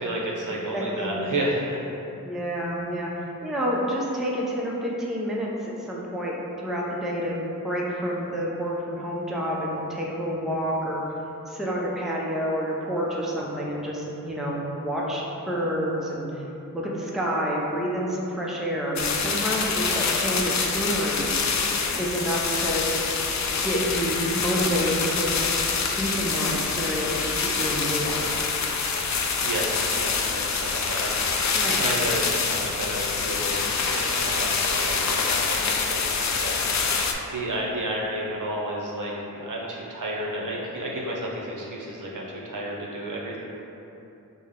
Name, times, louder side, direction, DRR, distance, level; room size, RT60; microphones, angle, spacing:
voice 1, 0.0-1.8 29.1-33.6 33.9-43.4, right 1 dB, 60° right, -3 dB, 0.8 m, -32 dB
voice 2, 0.7-1.3 2.2-3.1 3.4-7.4 7.6-11.0 11.5-16.3 16.7-21.3 22.0-22.8 23.6-25.3 26.0-28.3 31.5-31.8, equal, ahead, -4 dB, 0.6 m, -28 dB
sound 1, 19.0-37.1, left 5 dB, 50° left, 0.4 m, -26 dB
5.2 x 2.1 x 3.6 m, 3.0 s
cardioid pair, 55°, 35 cm